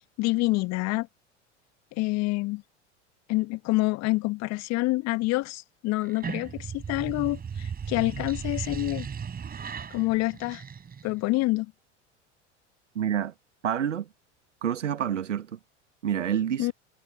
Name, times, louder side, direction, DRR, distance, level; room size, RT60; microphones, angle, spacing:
voice 1, 0.2-1.1 1.9-2.6 3.3-9.1 9.9-10.6 11.0-11.7 16.6-16.7, left 21 dB, 45° left, 1.5 m, -27 dB
sound 1, 6.0-11.3, right 7 dB, 25° right, 4.7 m, -36 dB
voice 2, 12.9-13.3 13.6-14.1 14.6-15.6 16.0-16.7, right 9 dB, 80° right, 1.1 m, -28 dB
figure-of-eight pair, 80°, 36 cm